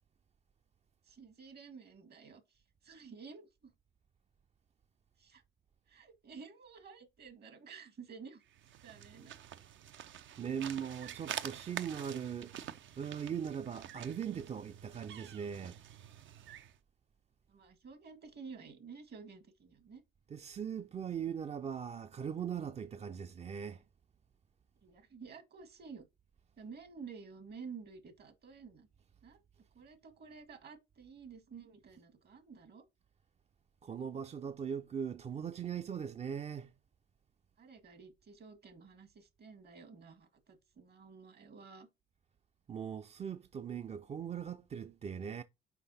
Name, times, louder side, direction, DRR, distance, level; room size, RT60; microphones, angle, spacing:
voice 1, 1.1-2.4 2.8-3.7 5.2-5.4 5.9-8.4 8.8-9.3 17.5-20.0 24.8-26.0 26.6-28.9 29.2-29.4 29.7-32.9 37.6-41.9, right 5 dB, 55° right, 1.8 m, -52 dB
sound 1, 8.5-16.8, right 10 dB, 75° right, 0.6 m, -47 dB
voice 2, 10.4-15.8 20.3-23.8 33.8-36.7 42.7-45.4, right 8 dB, 35° right, 0.4 m, -40 dB
5.9 x 4.8 x 4.1 m
cardioid pair, 90°, 20 cm